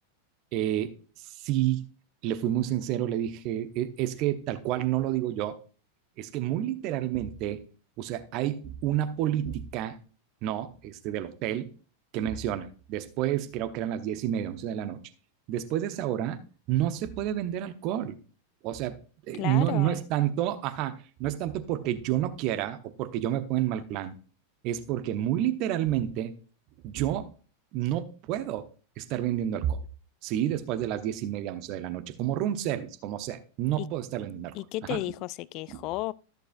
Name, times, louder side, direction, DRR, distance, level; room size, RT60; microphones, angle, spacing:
voice 1, 0.5-1.8 2.2-5.6 6.2-7.6 8.0-10.0 10.4-11.8 12.1-15.0 15.5-18.1 18.6-19.0 19.3-24.1 24.6-26.3 26.8-27.3 27.7-28.7 29.0-29.8 30.2-34.5 34.9-35.0 35.7-35.8, right 12 dB, 40° right, 0.9 m, -29 dB
voice 2, 19.4-20.0 33.8-33.9 34.5-36.1, left 18 dB, 40° left, 0.3 m, -33 dB
13.5 x 6.5 x 2.5 m
figure-of-eight pair, 90°, 0 cm